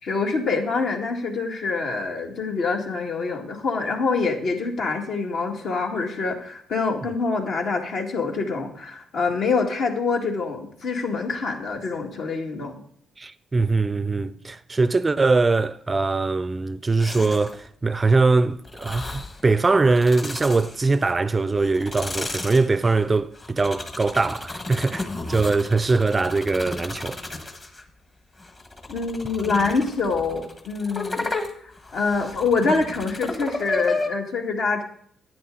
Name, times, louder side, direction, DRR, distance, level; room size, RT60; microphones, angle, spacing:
voice 1, 0.0-12.8 28.9-31.3 31.6-34.8, left 4 dB, 65° left, 2.0 m, -25 dB
voice 2, 13.2-27.2, right 3 dB, 25° right, 0.4 m, -22 dB
sound 1, 17.0-17.7 18.6-19.4 19.8-21.1 21.6-27.8 28.4-34.1, left 3 dB, 30° left, 1.5 m, -33 dB
11.0 x 9.2 x 3.9 m
cardioid pair, 90°, 0 cm